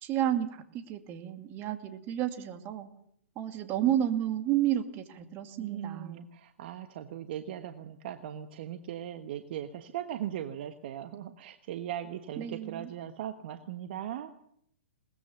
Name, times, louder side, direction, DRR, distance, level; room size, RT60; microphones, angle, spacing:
voice 1, 0.0-0.5 0.7-2.9 3.4-6.3 12.4-12.9, right 11 dB, 30° right, 9 dB, 2.2 m, -31 dB
voice 2, 5.6-14.3, right 10 dB, 50° right, 9 dB, 1.3 m, -39 dB
21.5 x 19.5 x 7.0 m, 0.70 s
figure-of-eight pair, 120°, 7 cm